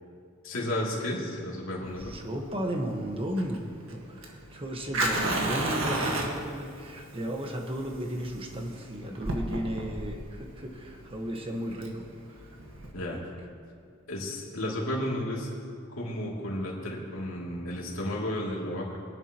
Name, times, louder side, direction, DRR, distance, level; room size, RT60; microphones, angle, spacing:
voice 1, 0.4-2.1 12.9-13.2 14.1-15.5 15.9-19.0, left 1 dB, 80° left, -4 dB, 2.9 m, -33 dB
Fire, 1.8-12.9, right 1 dB, 75° right, 1.8 m, -33 dB
voice 2, 2.0-12.1 12.4-12.5 12.9-13.2, equal, 30° right, 2 dB, 1.4 m, -35 dB
23.0 x 11.0 x 3.1 m, 2.4 s
head